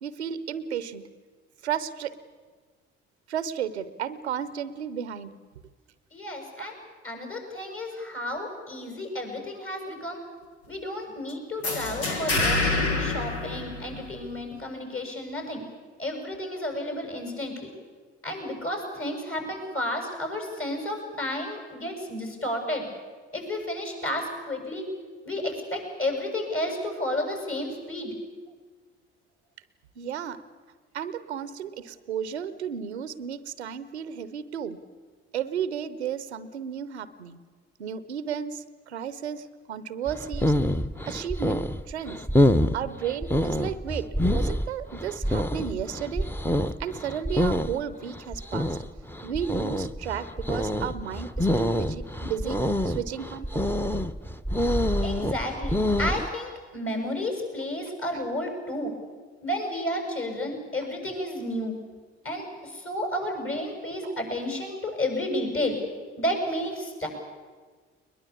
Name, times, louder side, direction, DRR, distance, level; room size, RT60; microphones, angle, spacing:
voice 1, 0.0-1.1 1.6-2.2 3.3-5.3 6.6-6.7 30.0-30.4 30.9-34.8 35.3-37.4 37.8-40.5 41.1-42.2 42.7-46.3 46.8-48.8 49.2-53.6 64.0-64.1, right 8 dB, 90° right, 15 dB, 0.7 m, -33 dB
voice 2, 6.1-6.7 7.0-10.2 10.7-15.6 16.0-17.7 18.2-22.9 23.3-24.9 25.2-28.1 55.0-58.9 59.4-61.8 62.2-65.8 66.2-67.1, left 1 dB, 40° left, 3 dB, 7.6 m, -32 dB
sound 1, 11.6-14.3, left 2 dB, 85° left, 1.4 m, -27 dB
sound 2, 40.1-56.3, left 1 dB, 5° left, 0.9 m, -26 dB
21.0 x 21.0 x 8.5 m, 1.5 s
figure-of-eight pair, 40°, 32 cm